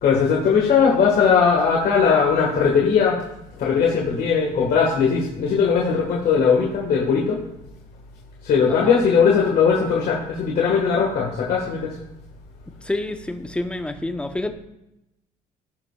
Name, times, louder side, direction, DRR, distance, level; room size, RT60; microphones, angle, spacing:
voice 1, 0.0-3.2 3.6-7.4 8.4-11.9, left 6 dB, 60° left, -2 dB, 1.5 m, -19 dB
voice 2, 8.7-9.0 12.8-14.5, left 2 dB, 5° left, 7 dB, 0.7 m, -28 dB
16.0 x 5.4 x 2.3 m, 0.88 s
cardioid pair, 110°, 17 cm